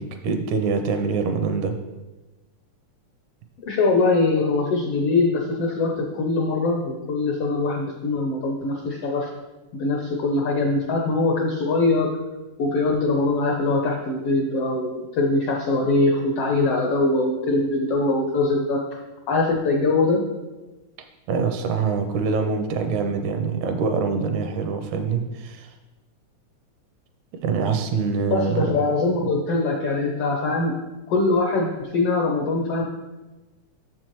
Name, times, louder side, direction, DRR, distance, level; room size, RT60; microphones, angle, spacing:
voice 1, 0.0-1.7 21.3-25.7 27.4-28.7, right 5 dB, 80° right, 6 dB, 2.1 m, -24 dB
voice 2, 3.7-9.3 9.7-12.1 12.6-18.8 19.3-20.2 28.3-30.7 31.1-32.8, left 3 dB, 75° left, 0 dB, 1.3 m, -22 dB
7.4 x 7.0 x 3.1 m, 1.1 s
omnidirectional pair, 3.5 m